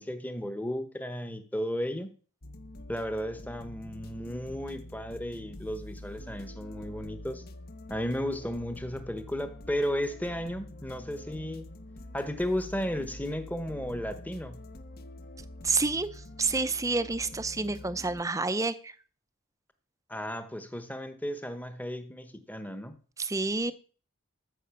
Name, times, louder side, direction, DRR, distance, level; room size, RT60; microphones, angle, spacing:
voice 1, 0.0-2.1 2.9-7.4 7.9-11.7 12.1-14.6 20.1-23.0, equal, 5° left, 1.0 m, -34 dB
sound 1, 2.4-18.2, left 1 dB, 45° left, 0.8 m, -46 dB
voice 2, 15.6-18.9 23.2-23.7, right 3 dB, 15° right, 0.6 m, -29 dB
13.5 x 5.5 x 6.9 m
head